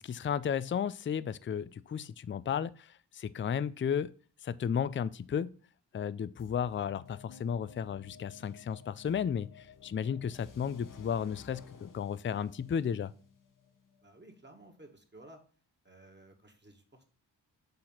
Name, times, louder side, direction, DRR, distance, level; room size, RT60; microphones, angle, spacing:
voice 1, 0.0-4.1 4.4-5.5 5.9-13.1, left 7 dB, 30° left, 0.4 m, -34 dB
sound 1, 6.4-14.3, left 6 dB, 45° left, 1.1 m, -54 dB
sound 2, 7.3-9.7, right 1 dB, 85° left, 1.0 m, -61 dB
voice 2, 14.0-15.4 15.8-17.1, right 1 dB, 25° right, 2.0 m, -55 dB
6.6 x 4.2 x 5.7 m
supercardioid pair, 40°, 45 cm